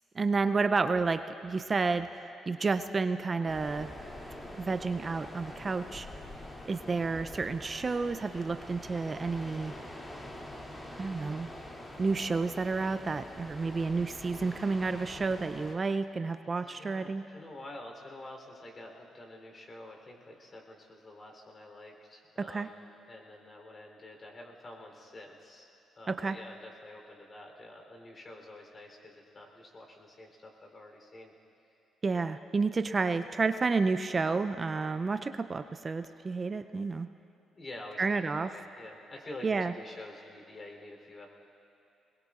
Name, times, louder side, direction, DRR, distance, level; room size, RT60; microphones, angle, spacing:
voice 1, 0.1-2.1 2.5-3.9 4.6-6.1 6.7-9.7 11.0-11.5 12.0-17.2 22.4-22.7 26.1-26.4 32.0-37.1 38.0-38.5 39.4-39.7, right 4 dB, 35° right, 10 dB, 0.5 m, -30 dB
sound 1, 3.5-15.8, left 1 dB, 20° left, 2.6 m, -45 dB
voice 2, 16.6-25.7 26.0-31.3 37.5-41.3, left 1 dB, 40° left, 1 dB, 3.4 m, -48 dB
22.5 x 21.0 x 2.5 m, 2.7 s
supercardioid pair, 60°, 0 cm